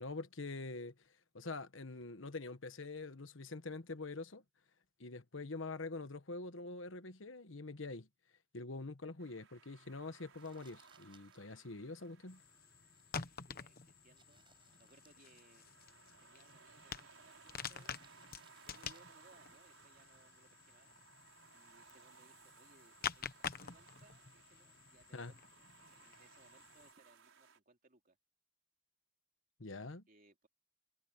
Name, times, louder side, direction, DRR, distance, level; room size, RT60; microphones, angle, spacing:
voice 1, 0.0-4.4 5.0-8.1 8.5-12.4 25.1-25.3 29.6-30.0, left 3 dB, 70° left, 1.3 m, -45 dB
sound 1, 9.2-27.6, right 5 dB, 80° right, 6.6 m, -63 dB
Crumpling crinkling, 10.3-20.5, right 5 dB, 25° right, 6.6 m, -73 dB
sound 2, 12.3-26.9, left 7 dB, 45° left, 1.1 m, -49 dB
voice 2, 13.5-14.5 14.8-15.6 16.2-18.3 18.6-21.0 21.5-28.2 30.1-30.5, right 2 dB, 45° right, 3.5 m, -68 dB
head